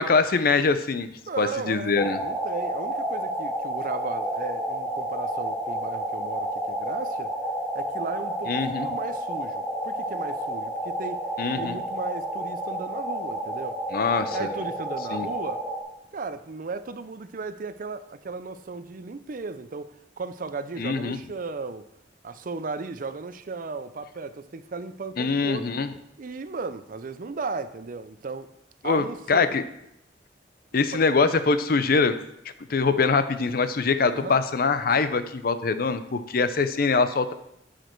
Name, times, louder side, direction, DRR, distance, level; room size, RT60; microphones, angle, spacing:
voice 1, 0.0-1.1 1.4-2.2 8.5-8.9 11.4-11.8 13.9-14.5 15.1-15.3 20.8-21.2 25.2-25.9 28.8-29.6 30.7-32.1 32.7-37.3, left 4 dB, 55° left, 0.6 m, -23 dB
voice 2, 1.3-7.3 7.7-11.2 11.6-13.8 14.3-15.6 16.1-21.9 22.2-25.7 26.2-28.5 28.8-29.5 30.9-31.0 34.1-34.4, right 4 dB, 50° right, 0.5 m, -35 dB
sound 1, 2.0-15.8, right 1 dB, 5° left, 1.5 m, -30 dB
10.5 x 5.1 x 4.5 m
head